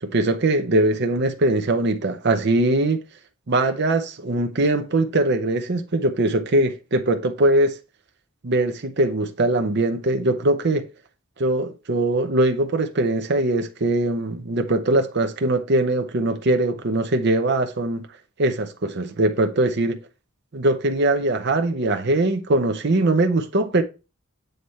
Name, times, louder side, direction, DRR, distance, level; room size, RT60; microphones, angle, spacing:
voice 1, 0.0-3.0 3.5-7.7 8.4-10.9 11.4-18.1 18.4-20.0 20.5-23.8, right 2 dB, 55° right, 0.7 m, -21 dB
7.9 x 3.4 x 4.1 m
head